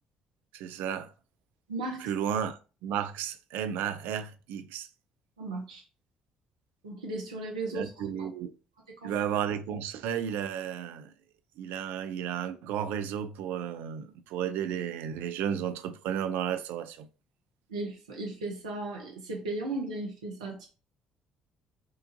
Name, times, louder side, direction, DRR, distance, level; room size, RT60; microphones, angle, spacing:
voice 1, 0.5-1.1 2.0-4.9 7.7-8.5 9.0-11.1 11.6-17.1, right 9 dB, 65° right, 0.4 m, -33 dB
voice 2, 1.7-2.0 5.4-5.8 6.8-8.3 9.0-9.1 17.7-20.7, right 2 dB, 85° right, 0.9 m, -36 dB
4.5 x 2.5 x 2.6 m
hypercardioid pair, 50°, 4 cm